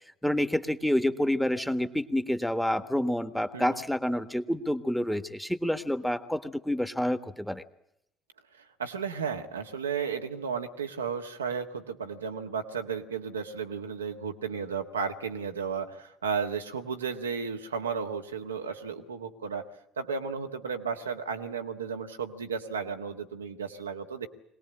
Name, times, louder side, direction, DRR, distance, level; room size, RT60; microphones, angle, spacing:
voice 1, 0.2-7.6, left 1 dB, ahead, 11 dB, 1.5 m, -28 dB
voice 2, 8.6-19.6 20.0-24.3, right 6 dB, 85° right, 5 dB, 1.4 m, -34 dB
22.5 x 19.5 x 8.8 m, 0.78 s
figure-of-eight pair, 55°, 0 cm